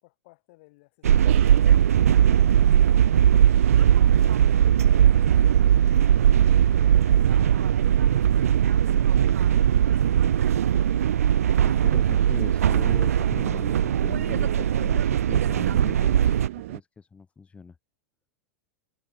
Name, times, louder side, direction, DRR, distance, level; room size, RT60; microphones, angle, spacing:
voice 1, 0.0-2.1 2.5-5.1 5.7-8.3 9.4-10.8, left 24 dB, 55° left, 4.5 m, -55 dB
sound 1, 1.0-16.5, right 10 dB, 85° right, 0.4 m, -19 dB
sound 2, 1.1-16.8, right 15 dB, 65° right, 1.2 m, -37 dB
voice 2, 11.6-17.8, left 5 dB, 15° left, 1.8 m, -40 dB
hypercardioid pair, 110°, 8 cm